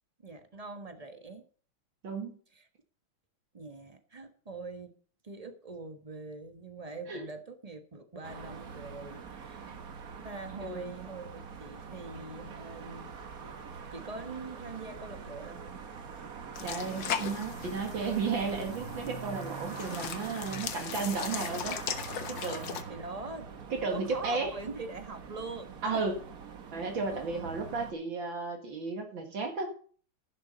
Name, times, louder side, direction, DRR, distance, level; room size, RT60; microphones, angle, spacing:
voice 1, 0.2-1.4 2.5-2.6 3.5-4.9 5.2-9.6 10.2-13.1 13.4-15.8 22.7-23.5 23.9-26.1 27.1-27.3, right 3 dB, 20° right, 7 dB, 1.1 m, -43 dB
voice 2, 2.0-2.3 7.1-7.2 9.7-9.9 10.6-10.9 16.6-21.8 22.3-22.8 23.7-24.5 25.8-26.2 26.7-29.7, right 4 dB, 65° right, 4 dB, 2.6 m, -34 dB
sound 1, 8.2-27.9, right 6 dB, 50° right, 1.5 m, -44 dB
sound 2, 16.6-22.8, left 8 dB, 65° left, 1.7 m, -38 dB
11.5 x 11.0 x 4.0 m, 0.43 s
omnidirectional pair, 2.3 m